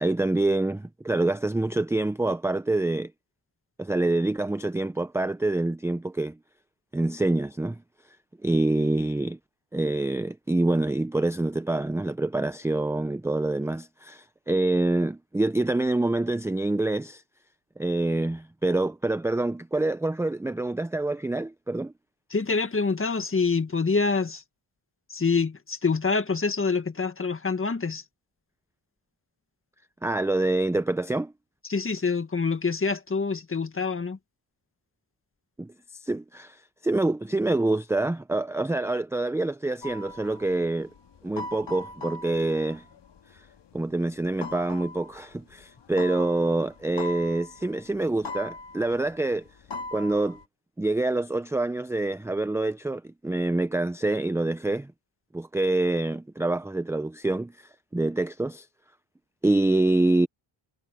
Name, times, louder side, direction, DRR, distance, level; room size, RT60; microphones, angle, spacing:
voice 1, 0.0-3.1 3.8-6.3 6.9-7.8 8.4-9.4 9.7-17.2 17.8-21.9 30.0-31.3 35.6-35.7 36.0-40.9 41.2-42.8 43.7-49.4 49.9-50.4 50.8-54.9 55.3-58.7 59.4-60.3, right 2 dB, 5° right, 0.6 m, -26 dB
voice 2, 22.3-24.4 25.1-28.0 31.6-34.2, left 4 dB, 30° left, 1.9 m, -26 dB
sound 1, 39.8-44.1 44.4-50.4, left 2 dB, 65° left, 2.1 m, -40 dB
cardioid pair, 85°, 46 cm